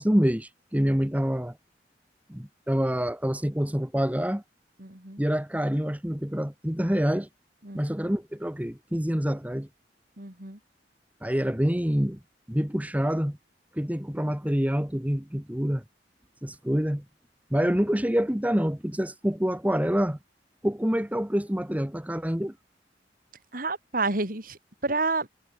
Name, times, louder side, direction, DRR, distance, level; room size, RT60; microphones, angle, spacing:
voice 1, 0.0-1.6 2.3-4.4 5.2-7.3 7.7-9.7 11.2-12.2 12.5-13.4 13.7-15.8 16.4-17.0 17.5-20.2 20.6-22.5, equal, 10° right, 1.4 m, -26 dB
voice 2, 4.8-5.2 7.6-7.9 10.2-10.6 23.5-25.3, right 3 dB, 55° right, 4.7 m, -30 dB
head